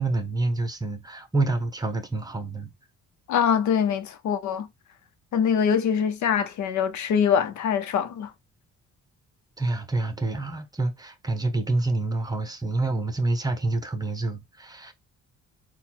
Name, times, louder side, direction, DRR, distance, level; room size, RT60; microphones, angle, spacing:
voice 1, 0.0-2.7 9.6-14.9, right 2 dB, 10° right, 1.0 m, -27 dB
voice 2, 3.3-4.7 5.3-8.3, left 7 dB, 70° left, 0.9 m, -23 dB
4.0 x 2.3 x 4.4 m
cardioid pair, 90°, 30 cm